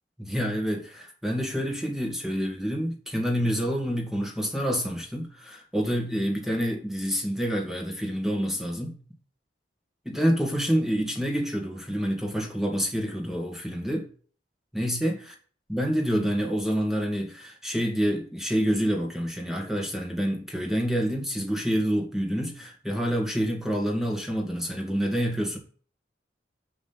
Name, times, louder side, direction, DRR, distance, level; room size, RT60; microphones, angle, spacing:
voice 1, 0.2-9.0 10.1-14.1 14.7-15.3 15.7-25.6, equal, ahead, 2.2 m, -27 dB
7.6 x 5.9 x 5.8 m
head